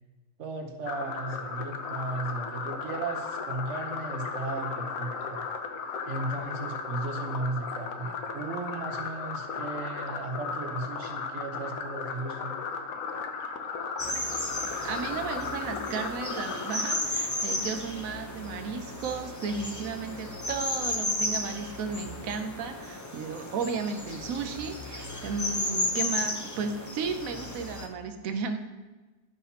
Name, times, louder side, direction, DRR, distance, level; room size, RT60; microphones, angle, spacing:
voice 1, 0.4-5.4 6.1-12.6, right 3 dB, 60° right, 4 dB, 1.1 m, -35 dB
sound 1, 0.9-17.0, left 5 dB, 90° left, 1.2 m, -36 dB
sound 2, 14.0-27.9, left 2 dB, 20° left, 0.4 m, -34 dB
voice 2, 14.8-28.6, right 5 dB, 80° right, 7 dB, 1.1 m, -34 dB
12.0 x 5.7 x 2.8 m, 1.2 s
omnidirectional pair, 1.4 m